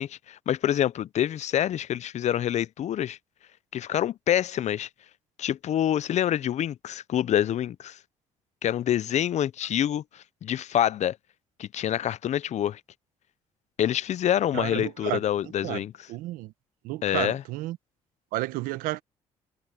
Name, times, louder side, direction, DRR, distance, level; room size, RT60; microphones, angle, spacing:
voice 1, 0.0-3.2 3.7-4.9 5.4-8.0 8.6-11.2 11.6-12.8 13.8-16.1 17.0-17.4, left 11 dB, 55° left, 0.6 m, -26 dB
voice 2, 14.5-15.2 15.6-15.8 16.1-16.5 16.8-17.8 18.3-19.0, right 18 dB, 85° right, 1.3 m, -31 dB
supercardioid pair, 65°, 14 cm